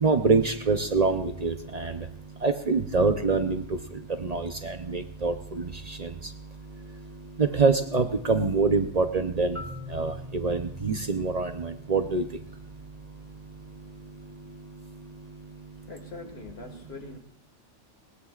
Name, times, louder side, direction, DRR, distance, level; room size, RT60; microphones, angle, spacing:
voice 1, 0.0-1.9 2.4-3.6 4.2-6.1 7.4-9.6 9.9-12.2, right 4 dB, 40° right, 8 dB, 0.6 m, -25 dB
Marimba xylophone, 9.5-13.4, left 2 dB, 10° right, 1.2 m, -45 dB
voice 2, 15.9-17.2, left 4 dB, 50° left, 4 dB, 2.0 m, -42 dB
20.5 x 19.5 x 2.4 m, 0.68 s
omnidirectional pair, 1.4 m